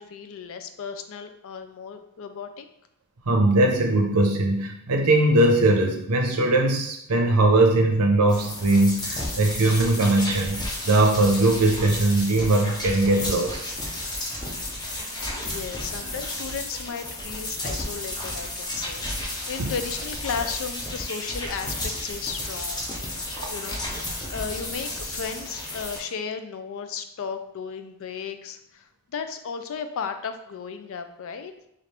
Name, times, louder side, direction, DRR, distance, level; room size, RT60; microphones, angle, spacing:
voice 1, 0.0-2.7 15.4-22.9 23.5-24.0 24.3-31.5, left 6 dB, 65° left, 8 dB, 0.4 m, -35 dB
voice 2, 3.3-13.6 19.6-19.7, right 2 dB, 85° right, 2 dB, 0.7 m, -20 dB
sound 1, 8.3-26.0, left 1 dB, 20° left, 0.7 m, -33 dB
4.3 x 2.5 x 3.3 m, 0.77 s
head